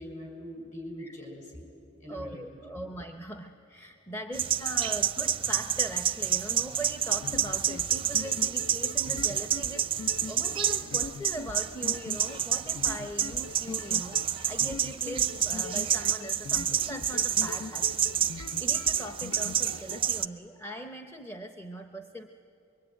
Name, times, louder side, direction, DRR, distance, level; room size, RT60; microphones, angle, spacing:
voice 1, 0.0-1.6 2.0-2.4, equal, 35° left, 1 dB, 6.1 m, -42 dB
voice 2, 2.1-22.3, right 1 dB, 10° left, 5 dB, 0.7 m, -41 dB
sound 1, 4.3-20.3, right 9 dB, 25° right, 0.5 m, -29 dB
sound 2, 7.1-20.0, left 4 dB, 80° left, 0.7 m, -42 dB
sound 3, 10.2-11.0 12.1-12.5 13.5-14.0 15.2-15.6 16.9-17.7 19.3-19.7, left 2 dB, 60° left, 3.5 m, -53 dB
23.5 x 23.0 x 9.2 m, 2.7 s
head